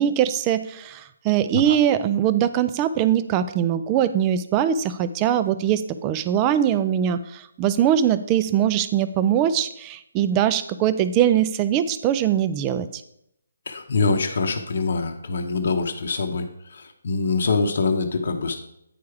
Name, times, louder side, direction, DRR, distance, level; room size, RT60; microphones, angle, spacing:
voice 1, 0.0-13.0, right 10 dB, 15° right, 12 dB, 0.3 m, -22 dB
voice 2, 13.7-18.6, left 4 dB, 50° left, 4 dB, 0.8 m, -24 dB
9.4 x 4.8 x 4.8 m, 0.77 s
hypercardioid pair, 175°, 0 cm